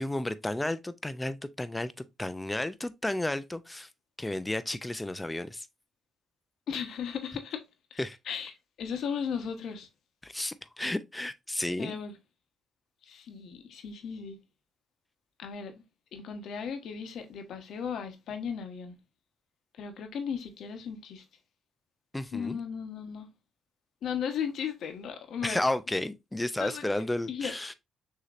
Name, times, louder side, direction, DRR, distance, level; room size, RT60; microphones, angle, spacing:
voice 1, 0.0-1.9 2.2-3.9 4.2-5.7 8.0-8.2 10.2-12.0 22.1-22.6 25.4-27.7, left 1 dB, 10° left, 0.4 m, -32 dB
voice 2, 6.7-7.6 7.9-8.0 8.3-8.5 8.8-9.9 11.8-12.1 13.0-14.4 15.4-15.7 16.1-18.9 19.7-21.2 22.3-23.3 24.0-25.6 26.6-26.9 27.3-27.5, left 7 dB, 70° left, 1.0 m, -36 dB
6.3 x 2.8 x 2.4 m
cardioid pair, 90°, 0 cm